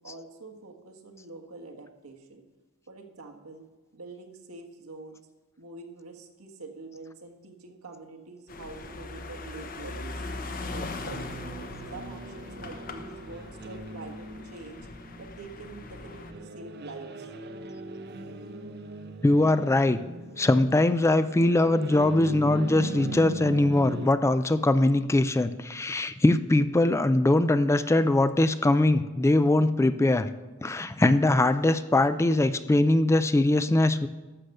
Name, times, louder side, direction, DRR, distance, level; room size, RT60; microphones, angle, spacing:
voice 1, 0.0-2.4 2.9-3.6 3.9-5.2 5.6-10.2 10.7-11.2 11.9-14.9 15.2-17.3, right 3 dB, 90° right, 3 dB, 1.5 m, -45 dB
sound 1, 8.5-16.3, left 3 dB, 40° left, 0.8 m, -40 dB
sound 2, 10.6-24.1, right 2 dB, 50° right, 0.8 m, -40 dB
voice 2, 19.2-20.0 20.4-30.3 30.6-34.1, left 2 dB, 15° left, 12 dB, 0.3 m, -22 dB
11.5 x 6.7 x 6.6 m, 1.2 s
head